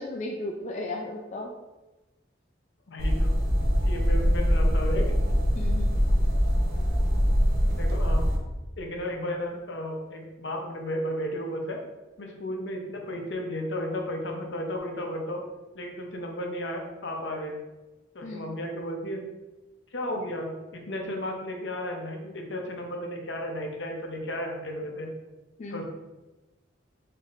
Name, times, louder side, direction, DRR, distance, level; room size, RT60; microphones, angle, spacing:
voice 1, 0.0-1.5 5.6-5.9 18.2-18.5 25.6-25.8, left 2 dB, 40° left, 0 dB, 0.3 m, -35 dB
voice 2, 2.9-3.3 3.8-5.1 7.7-8.2 8.8-11.8 12.2-15.4 15.7-17.6 18.1-19.2 19.9-25.1 25.7-25.8, equal, 70° left, 2 dB, 0.7 m, -33 dB
sound 1, 3.0-8.4, equal, 50° right, 0.7 m, -23 dB
4.1 x 3.4 x 2.5 m, 1.1 s
head